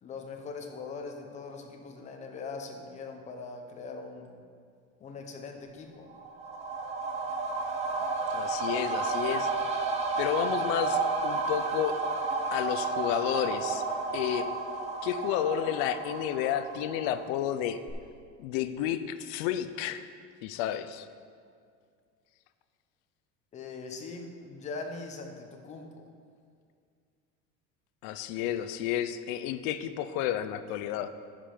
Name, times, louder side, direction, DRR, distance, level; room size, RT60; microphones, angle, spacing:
voice 1, 0.0-4.4 5.0-6.1 23.5-26.0, left 4 dB, 20° left, 3 dB, 0.7 m, -41 dB
sound 1, 6.1-17.6 17.9-18.0, right 3 dB, 20° right, 0.5 m, -32 dB
voice 2, 8.3-9.5 10.2-12.0 12.5-13.8 14.1-14.5 15.0-17.8 18.4-20.1 20.4-21.1 28.0-31.1, left 11 dB, 75° left, 12 dB, 0.6 m, -31 dB
9.9 x 5.2 x 5.8 m, 2.2 s
cardioid pair, 180°, 31 cm